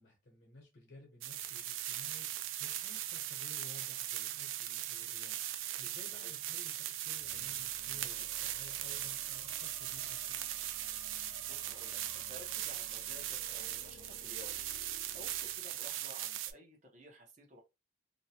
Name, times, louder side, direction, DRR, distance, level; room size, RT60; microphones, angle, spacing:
voice 1, 0.0-10.5, left 2 dB, 60° left, 0.9 m, -56 dB
sound 1, 1.2-16.5, right 12 dB, 80° right, 0.3 m, -39 dB
sound 2, 7.1-16.1, left 2 dB, 85° left, 0.5 m, -57 dB
voice 2, 11.5-14.7 15.1-17.6, equal, 40° right, 0.8 m, -54 dB
2.6 x 2.2 x 2.8 m
head